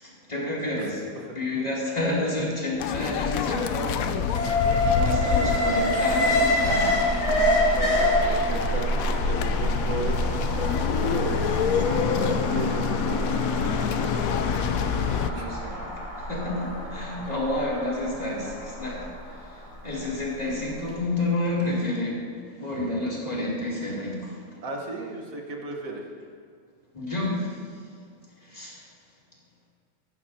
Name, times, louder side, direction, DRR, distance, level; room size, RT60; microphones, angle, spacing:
voice 1, 0.0-1.0 1.3-4.2 4.4-4.5 4.9-7.1 15.2-15.9 16.2-22.2 22.5-24.4 26.9-27.6 28.4-28.8, left 2 dB, 30° left, -7 dB, 3.2 m, -30 dB
voice 2, 0.8-1.4 7.8-13.4 15.4-15.5 17.2-17.3 24.6-26.1, right 2 dB, 80° right, 0 dB, 1.9 m, -35 dB
sound 1, 2.8-15.3, left 7 dB, 85° left, 1.1 m, -27 dB
Alarm, 4.3-20.4 20.8-20.9, equal, 50° left, 2.6 m, -27 dB
15.5 x 11.0 x 2.8 m, 2.1 s
omnidirectional pair, 1.4 m